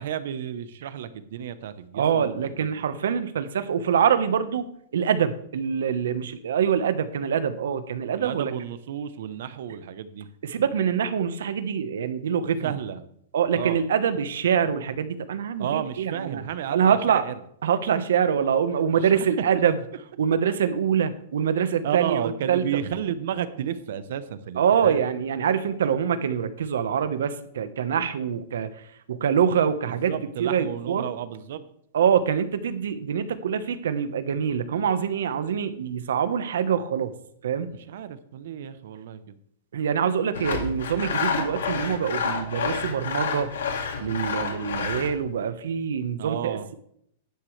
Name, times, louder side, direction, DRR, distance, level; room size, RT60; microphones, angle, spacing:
voice 1, 0.0-2.4 8.2-10.3 12.6-13.0 13.5-13.8 15.6-17.3 18.9-19.3 21.8-25.0 29.9-31.6 37.9-39.4 46.2-46.8, right 9 dB, 55° right, 13 dB, 0.8 m, -32 dB
voice 2, 1.9-8.5 10.4-12.7 13.3-16.4 16.7-17.2 17.6-19.8 20.2-22.8 24.6-28.7 29.1-30.1 30.4-31.1 31.9-37.1 37.4-37.7 39.7-43.5 44.0-46.8, right 7 dB, 90° right, 11 dB, 1.1 m, -25 dB
Sawing, 40.3-45.2, left 5 dB, 90° left, 2.0 m, -29 dB
12.0 x 9.6 x 3.3 m, 0.69 s
supercardioid pair, 175°, 0 cm